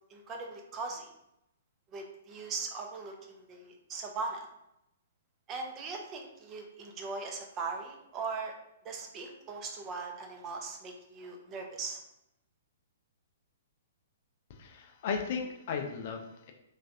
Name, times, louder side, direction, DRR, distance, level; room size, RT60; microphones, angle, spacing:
voice 1, 0.1-1.1 1.9-4.5 5.5-8.5 8.8-12.0, right 4 dB, 25° right, 3 dB, 0.5 m, -39 dB
voice 2, 14.6-16.5, left 6 dB, 45° left, 4 dB, 0.4 m, -35 dB
3.0 x 2.4 x 2.6 m, 0.82 s
figure-of-eight pair, 115°, 0 cm